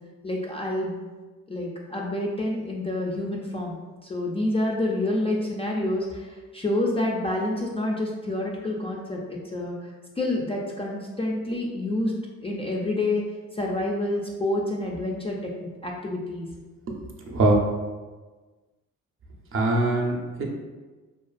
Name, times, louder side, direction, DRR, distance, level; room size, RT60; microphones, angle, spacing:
voice 1, 0.2-0.9 1.5-3.8 4.0-9.8 10.2-12.1 12.4-13.2 13.5-16.5, left 1 dB, 20° left, -2 dB, 0.3 m, -28 dB
voice 2, 19.5-20.4, right 2 dB, 45° right, 0 dB, 0.5 m, -22 dB
2.5 x 2.4 x 2.3 m, 1.3 s
cardioid pair, 90°, 30 cm